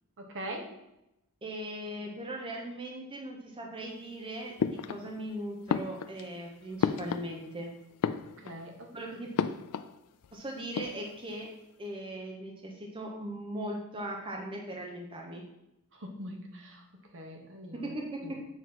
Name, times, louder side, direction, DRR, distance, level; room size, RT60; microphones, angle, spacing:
voice 1, 0.2-0.7 8.4-8.9 15.9-16.8 17.1-17.9 18.2-18.4, right 1 dB, 60° right, 2 dB, 1.1 m, -42 dB
voice 2, 1.4-7.7 8.9-9.3 10.3-11.5 11.8-15.4 17.8-18.2, right 1 dB, 25° right, 0 dB, 0.8 m, -39 dB
sound 1, 4.6-5.3 5.7-7.6 7.9-8.8 9.4-10.0 10.2-10.3 10.6-11.3, left 6 dB, 80° left, 0.4 m, -33 dB
7.3 x 3.0 x 5.8 m, 0.87 s
head